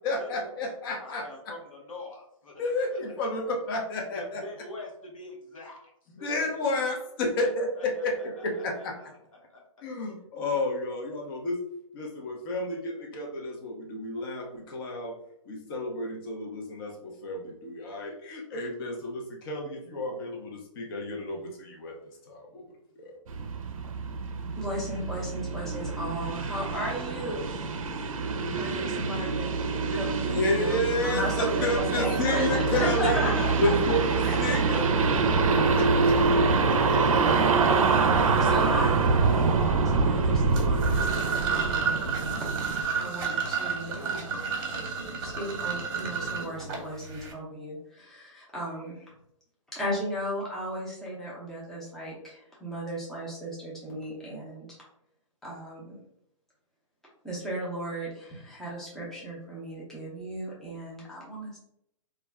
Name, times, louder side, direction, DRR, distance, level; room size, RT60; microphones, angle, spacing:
voice 1, 0.0-1.3 2.6-4.4 6.2-8.9 9.8-11.6 11.9-15.1 15.5-22.0 22.3-22.6 23.0-23.2 29.9-30.0 30.3-33.2 33.6-34.9 35.7-35.8, left 1 dB, 40° left, 1 dB, 0.7 m, -31 dB
voice 2, 1.0-3.3 4.1-5.8 6.2-6.5 7.4-8.4 8.9-9.6 32.3-33.0, left 3 dB, 80° left, 0 dB, 1.0 m, -43 dB
sound 1, 23.3-42.8, right 4 dB, 80° right, 0.4 m, -25 dB
voice 3, 24.6-27.5 28.5-29.6 29.9-33.7 34.3-34.6 37.2-39.5 39.8-42.0 42.4-42.5 42.9-44.5 45.2-49.1 49.7-54.8 55.4-56.0 57.2-61.6, equal, ahead, -6 dB, 0.6 m, -36 dB
sound 2, 31.8-36.4 37.5-39.8, left 7 dB, 25° left, 1.1 m, -42 dB
sound 3, 40.5-47.3, right 5 dB, 45° right, 0.8 m, -31 dB
2.3 x 2.0 x 3.4 m, 0.77 s
hypercardioid pair, 140°, 17 cm